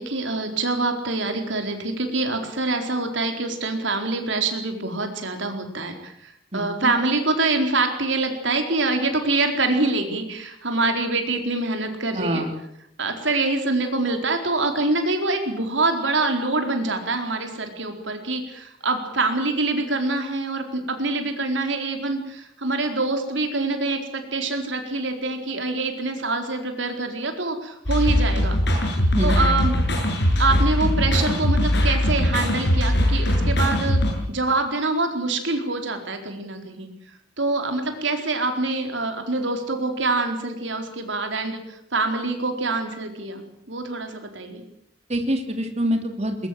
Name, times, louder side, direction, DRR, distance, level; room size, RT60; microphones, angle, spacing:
voice 1, 0.0-12.4 13.0-28.6 29.2-29.8 30.4-34.0 34.3-36.9 37.4-44.6, right 3 dB, 70° right, 5 dB, 4.3 m, -25 dB
voice 2, 6.5-6.9 12.1-12.5 29.1-29.5 45.1-46.4, equal, 35° right, 5 dB, 2.9 m, -25 dB
sound 1, 27.9-34.1, left 1 dB, 60° left, 7.2 m, -21 dB
21.0 x 21.0 x 7.9 m, 0.75 s
head